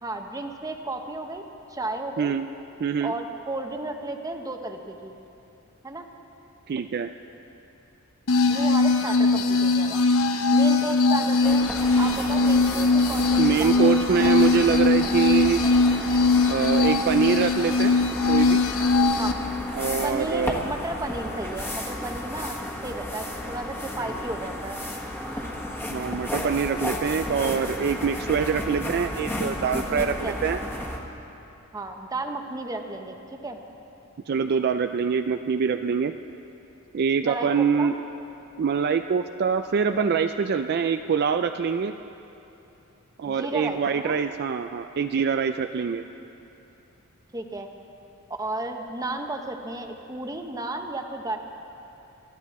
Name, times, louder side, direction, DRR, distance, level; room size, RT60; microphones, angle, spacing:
voice 1, 0.0-1.4 1.7-2.3 3.0-5.2 5.8-6.1 8.5-10.1 10.5-11.7 12.0-14.2 19.1-19.3 20.0-24.8 29.9-30.4 31.7-33.6 37.2-37.9 43.3-44.2 47.3-47.7 48.4-51.4, right 2 dB, 15° right, 5 dB, 0.9 m, -33 dB
voice 2, 2.2-2.5 2.8-3.1 6.7-7.1 13.4-15.7 16.5-17.9 18.3-18.6 19.7-20.6 25.9-30.6 34.3-36.1 36.9-37.9 38.6-41.9 43.2-46.0, right 6 dB, 50° right, 8 dB, 0.3 m, -24 dB
sound 1, 8.3-19.3, left 3 dB, 75° left, 0.9 m, -21 dB
sound 2, 11.4-31.0, left 1 dB, 10° left, 1.4 m, -33 dB
23.5 x 13.0 x 4.2 m, 2.9 s
head